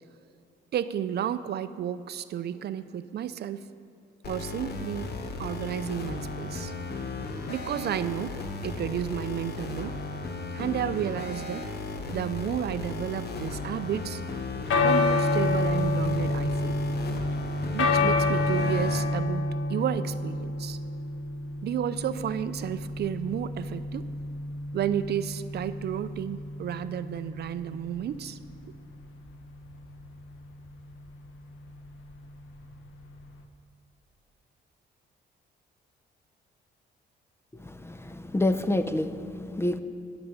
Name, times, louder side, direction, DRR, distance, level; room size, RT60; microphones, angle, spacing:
voice 1, 0.7-3.6 4.2-5.1 5.4-6.7 7.5-8.4 8.6-9.9 10.5-11.6 12.1-14.2 14.8-16.8 17.7-20.8 21.6-24.1 24.7-28.4, right 10 dB, 55° right, 14 dB, 0.4 m, -32 dB
sound 1, 4.2-19.1, left 3 dB, 55° left, 1.1 m, -36 dB
sound 2, 14.7-33.4, left 2 dB, 80° left, 1.1 m, -29 dB
voice 2, 37.5-39.8, left 1 dB, 10° left, 10 dB, 0.5 m, -28 dB
11.0 x 6.9 x 6.6 m, 2.4 s
cardioid pair, 90°, 20 cm